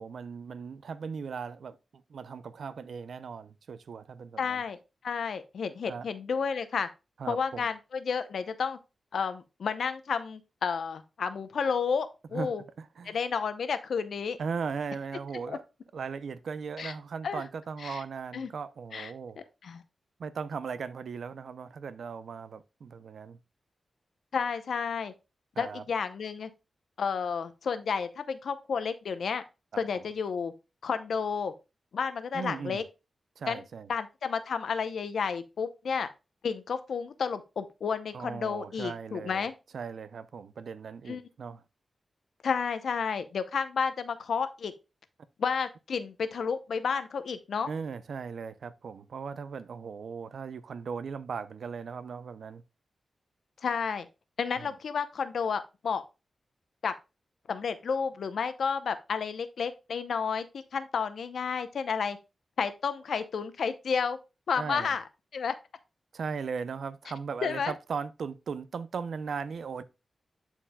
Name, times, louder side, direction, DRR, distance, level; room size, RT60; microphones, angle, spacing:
voice 1, 0.0-4.6 5.9-6.1 7.2-7.7 12.3-12.5 12.8-13.2 14.4-15.6 15.9-19.4 20.2-23.4 25.6-25.8 29.9-30.0 32.3-32.8 33.4-33.9 38.1-39.5 39.7-41.6 47.7-52.6 54.6-54.7 64.6-65.0 66.1-69.8, right 5 dB, 75° right, 0.5 m, -38 dB
voice 2, 4.4-4.8 5.0-6.9 7.3-8.8 9.1-12.6 13.1-14.4 15.5-15.6 16.8-16.9 17.2-17.4 17.8-18.0 18.3-18.5 18.9-19.1 19.6-19.8 24.3-25.1 25.6-26.5 27.0-29.4 29.8-30.5 30.8-31.5 31.9-32.8 33.5-33.6 33.9-36.1 36.4-39.5 41.1-41.2 42.4-44.7 45.4-47.7 53.6-54.1 54.4-56.0 56.8-56.9 57.5-60.5 60.7-62.2 62.6-64.2 64.5-65.0 65.3-65.5 67.4-67.7, left 6 dB, 80° left, 0.7 m, -31 dB
11.5 x 4.5 x 2.3 m
wide cardioid pair, 110°, 0 cm